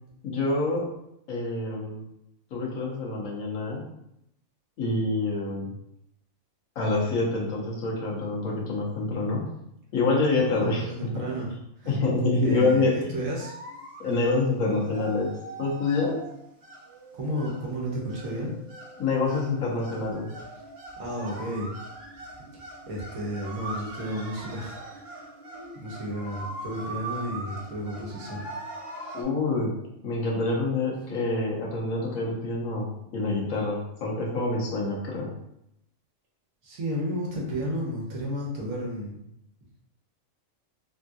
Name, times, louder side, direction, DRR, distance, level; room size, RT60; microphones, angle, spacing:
voice 1, 0.2-0.9 1.3-2.0 2.5-3.8 4.8-5.7 6.8-9.5 9.9-11.1 11.9-13.1 14.0-16.2 19.0-20.3 29.1-29.7 30.0-35.3, left 3 dB, 80° left, -3 dB, 1.3 m, -26 dB
voice 2, 10.4-12.0 12.3-13.5 17.1-18.6 21.0-21.7 22.9-24.7 25.7-28.4 36.6-39.2, equal, 75° right, -3 dB, 1.3 m, -32 dB
sound 1, 13.4-29.2, right 2 dB, 55° right, 0.8 m, -41 dB
3.5 x 2.6 x 2.3 m, 0.80 s
omnidirectional pair, 1.4 m